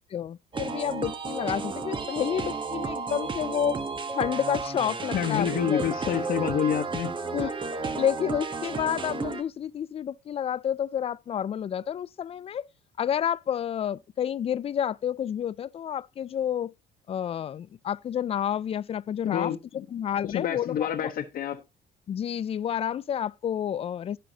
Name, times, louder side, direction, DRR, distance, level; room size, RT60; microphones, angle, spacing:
voice 1, 0.1-3.8 4.1-6.2 7.3-7.5 7.8-12.7 13.0-16.7 17.1-19.5 19.9-21.1 22.1-24.2, left 9 dB, 35° left, 0.4 m, -30 dB
sound 1, 0.5-9.4, right 4 dB, 30° right, 1.2 m, -32 dB
voice 2, 5.1-7.1 19.2-19.8 20.2-21.6, left 9 dB, 60° left, 1.1 m, -28 dB
16.0 x 5.8 x 2.9 m
cardioid pair, 110°, 17 cm